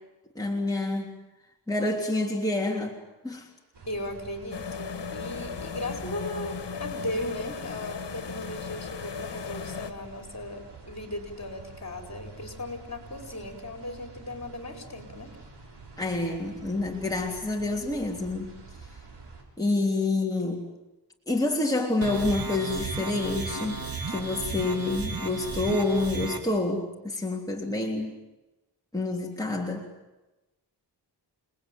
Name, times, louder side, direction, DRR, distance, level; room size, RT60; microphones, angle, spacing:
voice 1, 0.4-1.1 1.7-3.0 3.2-3.5 16.0-18.6 19.6-20.7 21.3-23.8 24.1-28.1 28.9-29.9, left 2 dB, 10° left, -1 dB, 3.4 m, -28 dB
sound 1, 3.7-19.4, right 4 dB, 70° right, 7.3 m, -48 dB
voice 2, 3.9-15.3, left 1 dB, 40° left, 4 dB, 5.2 m, -37 dB
sound 2, 4.5-9.9, left 6 dB, 80° left, 1.6 m, -37 dB
sound 3, 22.0-26.4, right 4 dB, 55° right, 3.3 m, -34 dB
30.0 x 20.0 x 9.3 m, 1.1 s
wide cardioid pair, 100°, 42 cm